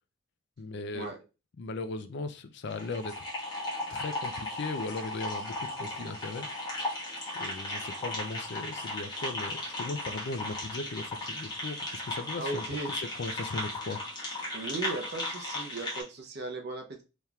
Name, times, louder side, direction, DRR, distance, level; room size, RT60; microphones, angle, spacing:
voice 1, 0.6-1.1 1.6-3.3 3.9-6.5 7.3-14.0, left 3 dB, 55° left, 10 dB, 0.4 m, -38 dB
sound 1, 2.7-16.0, left 1 dB, 20° left, 1.3 m, -36 dB
voice 2, 12.4-12.9 14.5-17.0, right 2 dB, 50° right, 4 dB, 0.7 m, -37 dB
4.3 x 3.4 x 2.3 m, 0.30 s
head